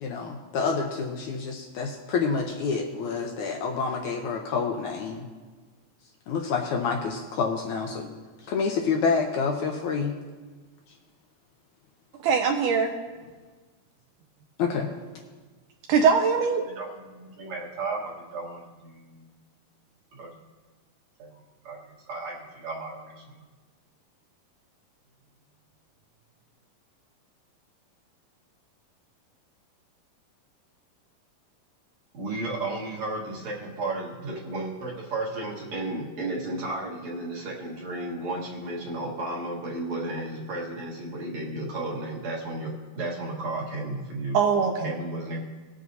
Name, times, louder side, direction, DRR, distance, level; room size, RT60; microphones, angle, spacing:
voice 1, 0.0-5.3 6.3-8.1 8.4-10.1 14.6-14.9, left 5 dB, 75° left, 2 dB, 1.8 m, -28 dB
voice 2, 12.2-12.9 15.9-16.7 44.3-44.9, right 6 dB, 80° right, 2 dB, 1.9 m, -21 dB
voice 3, 16.7-19.3 20.1-20.3 21.2-23.4 32.1-44.4 44.8-45.4, right 2 dB, 55° right, -4 dB, 2.5 m, -34 dB
19.0 x 7.6 x 2.7 m, 1.4 s
omnidirectional pair, 4.0 m